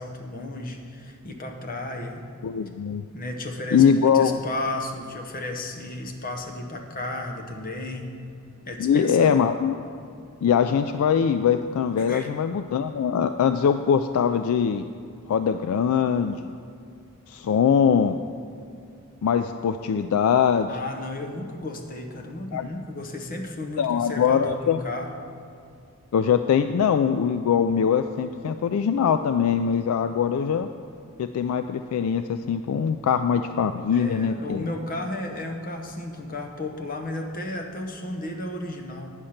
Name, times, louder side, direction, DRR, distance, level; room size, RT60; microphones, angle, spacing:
voice 1, 0.0-2.2 3.1-8.1 8.7-9.4 12.0-12.3 20.7-25.1 33.9-39.1, left 2 dB, 40° left, 3 dB, 0.9 m, -33 dB
voice 2, 2.4-3.0 3.7-4.3 8.8-9.7 10.4-14.9 15.3-16.6 17.3-18.2 19.2-20.7 22.5-22.7 23.8-24.8 26.1-30.7 31.2-34.7, left 7 dB, 70° left, 10 dB, 0.3 m, -22 dB
8.9 x 6.4 x 5.7 m, 2.5 s
head